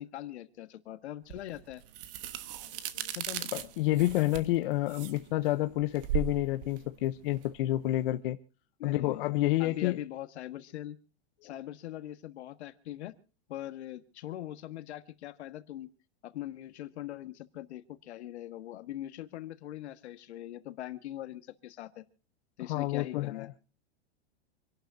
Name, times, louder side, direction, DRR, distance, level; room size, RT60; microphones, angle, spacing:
voice 1, 0.0-1.8 3.1-3.5 8.8-9.2 9.6-11.0 11.4-13.1 13.5-15.9 16.2-22.0 22.6-23.5, left 13 dB, 75° left, 1.6 m, -41 dB
sound 1, 1.3-8.1, right 10 dB, 55° right, 1.3 m, -38 dB
voice 2, 3.5-8.4 8.8-10.0 22.7-23.5, left 16 dB, 50° left, 0.8 m, -29 dB
27.0 x 11.5 x 2.7 m
supercardioid pair, 165°, 33 cm